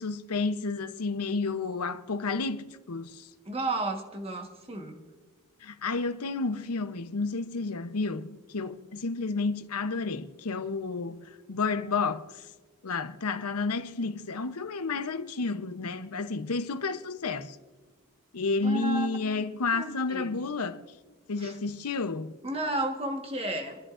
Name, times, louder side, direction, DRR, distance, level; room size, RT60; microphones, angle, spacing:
voice 1, 0.0-3.3 5.6-12.4 12.8-17.6 18.3-20.8 21.3-22.3, left 4 dB, 85° left, 0.8 m, -31 dB
voice 2, 3.4-5.0 18.6-19.4 19.7-20.4 21.4-21.6 22.4-23.8, right 1 dB, 25° right, 1.3 m, -33 dB
29.5 x 11.0 x 2.5 m
head